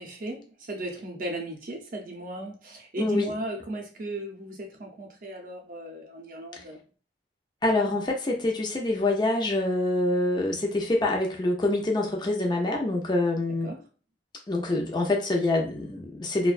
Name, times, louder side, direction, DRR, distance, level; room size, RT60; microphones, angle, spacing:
voice 1, 0.0-6.8 13.6-13.8, right 1 dB, 50° right, 1 dB, 0.6 m, -36 dB
voice 2, 3.0-3.3 7.6-13.7 14.5-16.5, left 2 dB, 25° left, 0 dB, 0.5 m, -26 dB
2.4 x 2.2 x 2.4 m, 0.36 s
head